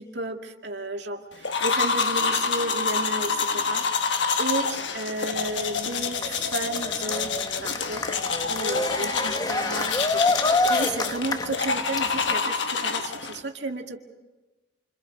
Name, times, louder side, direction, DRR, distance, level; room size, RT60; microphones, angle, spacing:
voice 1, 0.0-4.0 4.4-14.0, right 2 dB, 70° right, 3 dB, 2.2 m, -33 dB
sound 1, 1.4-13.4, left 5 dB, 85° left, 1.3 m, -27 dB
Cheering, 5.3-12.3, left 2 dB, 20° left, 0.8 m, -28 dB
28.5 x 27.0 x 5.2 m, 1.2 s
head